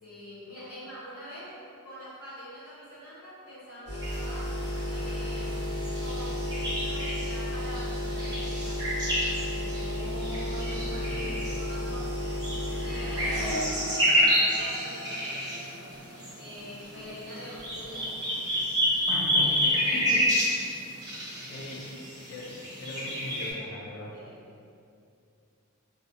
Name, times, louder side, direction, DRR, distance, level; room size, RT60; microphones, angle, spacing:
voice 1, 0.0-1.6 1.8-4.6 4.9-5.7 6.0-9.0 9.5-12.1 12.5-13.5 13.9-15.5 16.4-18.1 24.1-24.4, equal, 65° left, -10 dB, 1.0 m, -44 dB
sound 1, 3.9-13.5, left 1 dB, 85° left, 0.8 m, -33 dB
sound 2, 4.0-23.5, equal, 20° right, 0.6 m, -30 dB
voice 2, 10.8-11.2 19.1-20.3 20.5-20.7 21.5-22.0 22.3-24.2, left 2 dB, 50° left, -1 dB, 0.4 m, -39 dB
Accelerating revving vroom, 11.8-18.2 18.5-19.2, equal, 55° right, 0.5 m, -41 dB
2.3 x 2.0 x 2.8 m, 2.5 s
head